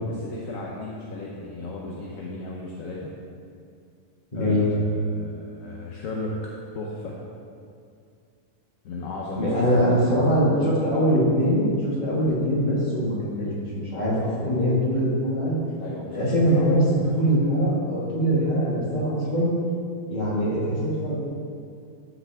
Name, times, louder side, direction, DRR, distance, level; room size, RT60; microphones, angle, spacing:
voice 1, 0.0-3.1 4.3-6.3 6.7-7.2 8.8-10.3 13.9-14.4 15.8-16.3 16.5-17.1, left 2 dB, 60° left, -3 dB, 1.2 m, -35 dB
voice 2, 4.3-4.7 9.4-15.6 16.1-16.8 17.1-19.5 20.1-21.1, equal, 30° left, -7 dB, 2.4 m, -22 dB
13.5 x 6.0 x 3.5 m, 2.3 s
omnidirectional pair, 1.7 m